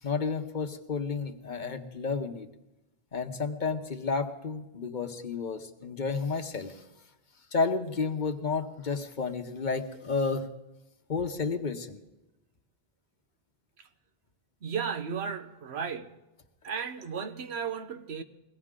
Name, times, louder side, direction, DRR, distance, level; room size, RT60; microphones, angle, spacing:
voice 1, 0.0-2.5 3.1-6.8 7.5-10.5 11.1-12.0, left 4 dB, 50° left, 1.1 m, -31 dB
voice 2, 14.6-16.1 16.6-18.2, right 6 dB, 90° right, 1.2 m, -34 dB
21.5 x 16.5 x 3.7 m
omnidirectional pair, 1.1 m